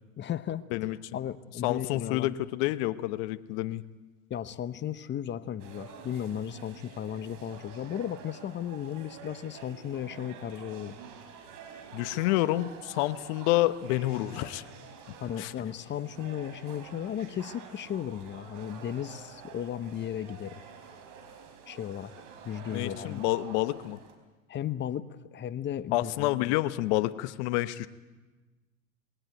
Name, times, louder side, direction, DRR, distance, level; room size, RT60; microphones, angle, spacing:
voice 1, 0.2-0.6 1.1-2.4 4.3-11.0 15.2-20.6 21.7-22.1 22.4-23.3 24.5-26.6, left 10 dB, 30° left, 15 dB, 1.0 m, -35 dB
voice 2, 1.6-3.8 11.9-14.6 15.4-15.5 22.7-24.0 25.9-27.9, left 17 dB, 60° left, 14 dB, 1.1 m, -28 dB
sound 1, 5.6-24.2, right 6 dB, 50° right, 4.0 m, -48 dB
21.0 x 18.0 x 9.1 m, 1.2 s
hypercardioid pair, 105°, 40 cm